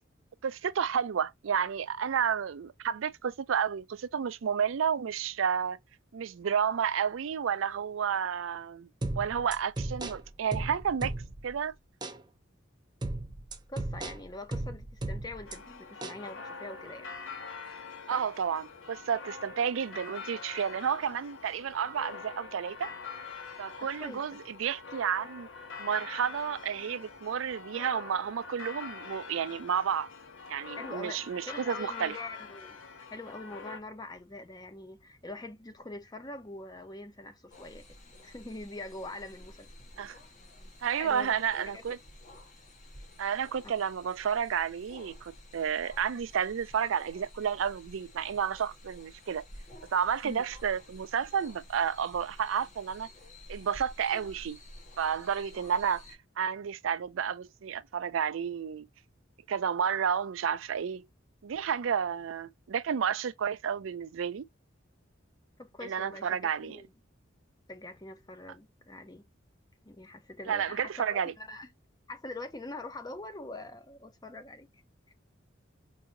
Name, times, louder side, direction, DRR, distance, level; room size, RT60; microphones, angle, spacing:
voice 1, 0.4-5.8 6.1-8.9 9.1-11.1 11.4-11.7 18.1-22.9 23.6-25.5 25.8-30.1 30.5-32.2 40.0-40.2 40.8-42.0 43.2-49.4 49.9-53.1 53.5-54.6 55.0-56.0 56.4-58.9 59.5-61.1 61.4-64.4 65.8-66.8 70.5-71.3, right 7 dB, 85° right, 0.4 m, -31 dB
sound 1, 9.0-11.5 12.0-12.2 13.0-15.6 16.0-16.2, right 2 dB, 20° right, 0.5 m, -36 dB
voice 2, 13.7-17.1 18.1-18.3 23.8-24.4 30.8-37.8 38.2-39.7 41.0-41.8 50.2-50.4 65.6-66.9 67.7-69.2 69.8-71.7 72.1-74.8 75.1-75.2, left 2 dB, 20° left, 0.7 m, -44 dB
sound 2, 15.4-33.8, left 5 dB, 85° left, 1.2 m, -44 dB
sound 3, 37.5-56.2, left 1 dB, 40° left, 1.4 m, -51 dB
4.8 x 2.7 x 2.6 m
head